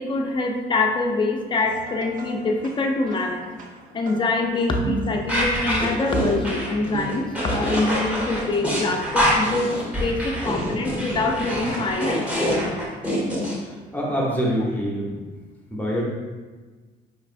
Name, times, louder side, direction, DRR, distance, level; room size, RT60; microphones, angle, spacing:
voice 1, 0.0-3.4 3.9-9.7 10.0-12.4, left 3 dB, 30° left, 2 dB, 0.6 m, -24 dB
sound 1, 1.6-10.2, right 4 dB, 50° right, 0.6 m, -37 dB
sound 2, 5.3-13.5, equal, 10° right, 1.3 m, -25 dB
voice 2, 13.9-15.1 15.7-16.0, equal, 10° left, -4 dB, 0.9 m, -24 dB
5.2 x 3.2 x 2.5 m, 1.4 s
cardioid pair, 110°, 17 cm